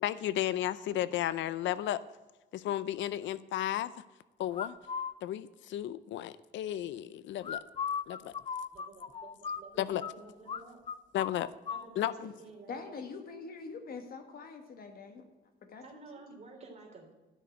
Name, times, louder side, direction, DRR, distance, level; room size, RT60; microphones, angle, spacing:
voice 1, 0.0-2.0 2.5-3.9 4.4-4.7 5.2-7.6 8.1-8.3 9.8-10.0 11.1-11.5 12.0-12.3, left 12 dB, 80° left, 16 dB, 0.5 m, -33 dB
sound 1, 4.5-5.1 7.4-10.1 10.5-10.6 10.9-11.8, left 7 dB, 30° left, 0.5 m, -37 dB
voice 2, 8.7-10.8 11.7-13.0 15.8-17.1, right 3 dB, 35° right, 1 dB, 3.2 m, -52 dB
voice 3, 12.7-15.2 15.7-15.8, left 4 dB, 55° left, 6 dB, 1.6 m, -44 dB
12.0 x 6.4 x 7.9 m, 1.1 s
cardioid pair, 155°, 19 cm